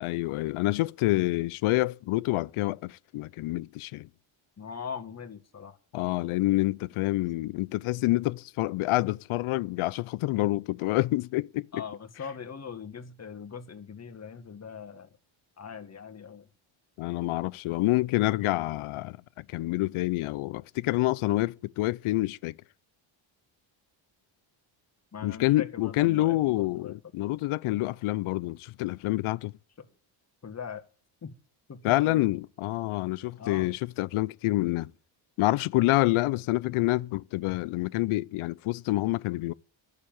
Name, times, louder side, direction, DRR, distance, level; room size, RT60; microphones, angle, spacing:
voice 1, 0.0-4.1 5.9-11.8 17.0-22.5 25.2-29.5 31.8-34.9 35.4-39.5, left 18 dB, 80° left, 0.6 m, -27 dB
voice 2, 4.6-5.8 11.7-15.1 15.6-16.5 25.1-27.0 29.8-29.9 30.4-30.8 31.2-31.3 31.7-32.3 33.4-33.7, left 6 dB, 30° left, 1.7 m, -41 dB
11.0 x 6.9 x 8.9 m
cardioid pair, 105°, 49 cm